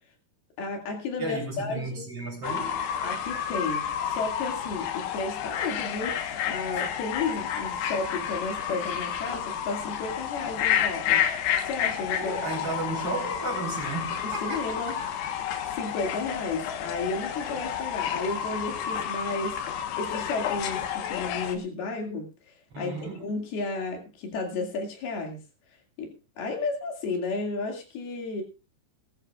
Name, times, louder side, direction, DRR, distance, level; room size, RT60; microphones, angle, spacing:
voice 1, 0.6-2.0 3.0-11.2 11.7-12.5 14.2-14.9 15.7-19.6 20.0-22.3 22.8-25.4 26.0-28.4, left 3 dB, 70° left, 4.2 m, -33 dB
voice 2, 1.2-2.9 12.2-14.9 22.7-23.3, right 3 dB, 35° right, 4.4 m, -34 dB
Fowl / Bird, 2.4-21.6, left 9 dB, 85° left, 3.4 m, -30 dB
19.5 x 13.0 x 2.4 m
omnidirectional pair, 4.7 m